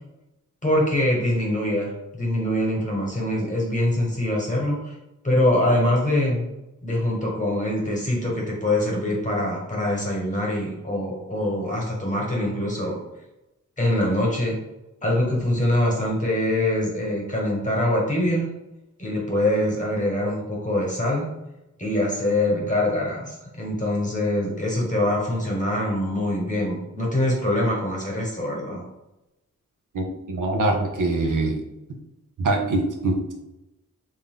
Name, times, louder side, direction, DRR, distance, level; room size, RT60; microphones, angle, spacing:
voice 1, 0.6-4.9 5.2-6.5 6.8-13.0 13.8-14.6 15.0-18.5 19.0-21.3 21.8-28.8, left 1 dB, 25° left, -3 dB, 1.3 m, -24 dB
voice 2, 29.9-31.6 32.4-33.3, right 2 dB, 75° right, 2 dB, 0.7 m, -23 dB
3.5 x 2.7 x 3.7 m, 0.95 s
wide cardioid pair, 110°, 31 cm